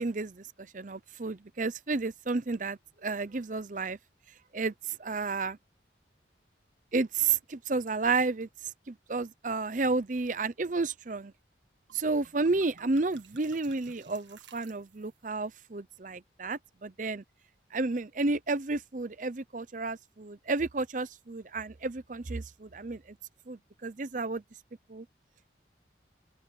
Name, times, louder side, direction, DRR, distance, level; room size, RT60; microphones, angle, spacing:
voice 1, 0.0-4.0 4.5-4.7 5.0-5.6 6.9-8.5 8.9-11.3 11.9-17.2 17.7-23.2 23.5-24.4 24.9-25.1, right 3 dB, 40° right, 0.7 m, -31 dB
sound 1, 11.9-12.0 12.2-15.3, right 6 dB, 75° right, 1.5 m, -56 dB
open air
head